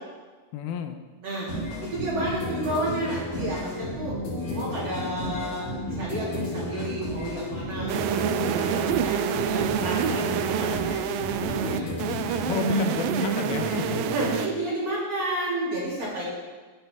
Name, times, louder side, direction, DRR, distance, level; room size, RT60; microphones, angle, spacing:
voice 1, 0.5-1.0 12.4-14.2, left 8 dB, 80° left, 6 dB, 2.5 m, -32 dB
sound 1, 1.5-14.4, left 1 dB, 65° left, 4.7 m, -32 dB
voice 2, 1.8-4.2 4.5-10.8 11.3-11.9 12.7-12.8 14.1-16.2, right 1 dB, 45° right, -8 dB, 3.9 m, -31 dB
sound 2, 7.9-14.5, right 10 dB, 80° right, 2.2 m, -28 dB
12.0 x 10.0 x 3.6 m, 1.3 s
omnidirectional pair, 4.4 m